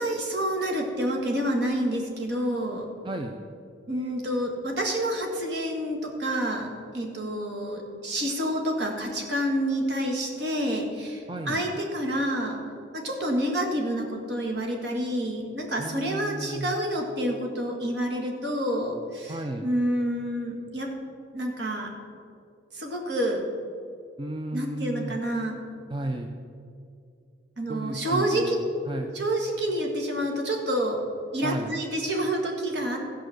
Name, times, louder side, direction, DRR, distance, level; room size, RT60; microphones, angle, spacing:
voice 1, 0.0-2.9 3.9-6.7 6.9-12.6 12.9-20.9 21.3-21.9 22.7-23.4 24.5-25.6 27.6-28.8 29.1-31.0 31.3-33.0, equal, 60° right, 1 dB, 1.8 m, -28 dB
voice 2, 3.0-3.4 11.3-11.6 15.8-16.7 19.3-19.7 24.2-25.2 25.9-26.3 27.7-28.6 28.9-29.1 31.4-31.8, right 1 dB, 25° right, 3 dB, 0.5 m, -33 dB
14.0 x 5.1 x 7.8 m, 2.3 s
head